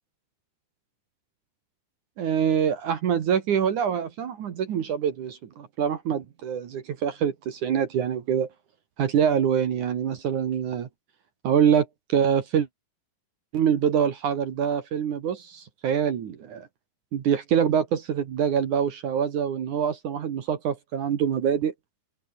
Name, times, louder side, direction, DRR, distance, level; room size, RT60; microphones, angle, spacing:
voice 1, 2.2-8.5 9.0-10.9 11.4-12.7 13.5-16.7 17.1-21.7, right 8 dB, 55° right, 2.9 m, -25 dB
open air
omnidirectional pair, 4.6 m